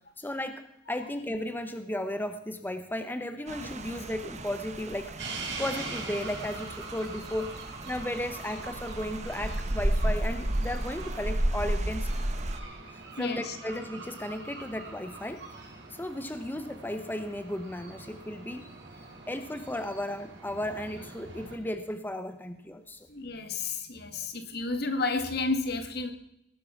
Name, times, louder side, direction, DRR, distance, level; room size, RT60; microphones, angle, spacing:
voice 1, 0.2-0.6 0.9-5.1 5.6-7.5 7.9-12.1 13.2-15.4 15.9-18.7 19.3-23.1, left 1 dB, 10° left, 9 dB, 0.8 m, -35 dB
Rain, 3.5-12.6, right 1 dB, 40° right, 1.2 m, -33 dB
Seagulls Brighton Beach UK, 5.2-21.6, right 3 dB, 85° right, 4.8 m, -44 dB
voice 2, 13.2-13.6 23.1-26.1, left 3 dB, 60° left, 7 dB, 1.9 m, -31 dB
19.0 x 9.3 x 5.9 m, 0.78 s
head